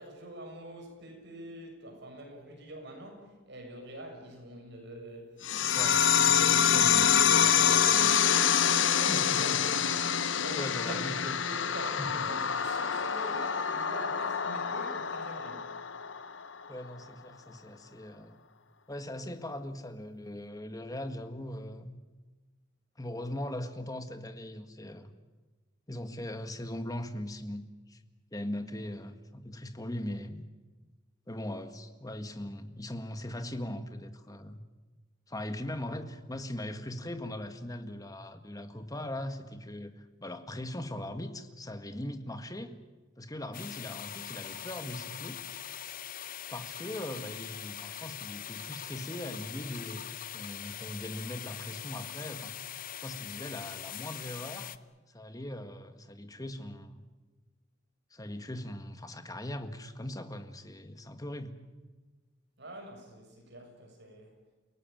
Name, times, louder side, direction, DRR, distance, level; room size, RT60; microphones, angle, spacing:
voice 1, 0.0-9.9 10.3-11.1 11.4-15.7 62.6-64.4, equal, 60° right, 3 dB, 6.8 m, -45 dB
sound 1, 5.4-16.5, left 8 dB, 70° left, 1.0 m, -26 dB
voice 2, 6.3-7.9 9.1-9.7 10.6-11.4 12.0-12.3 16.7-18.4 18.9-22.0 23.0-25.1 25.9-28.0 28.3-30.5 31.3-34.6 35.3-42.8 43.2-45.4 46.5-52.7 53.0-54.7 55.1-57.1 58.1-61.6, left 1 dB, 20° left, 8 dB, 1.7 m, -40 dB
sound 2, 43.5-54.8, left 10 dB, 45° left, 0.8 m, -42 dB
30.0 x 17.5 x 9.1 m, 1.3 s
head